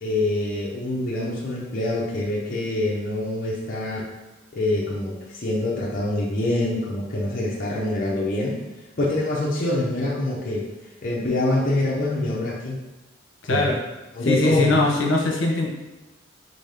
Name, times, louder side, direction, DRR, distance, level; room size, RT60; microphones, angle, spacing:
voice 1, 0.0-4.0 4.5-8.6 9.0-10.7 11.0-12.8 13.4-13.7 14.1-14.8, left 1 dB, 45° left, -4 dB, 0.6 m, -25 dB
voice 2, 13.5-13.9 14.2-15.7, left 2 dB, 70° left, 0 dB, 0.8 m, -21 dB
4.0 x 3.7 x 3.4 m, 1.1 s
head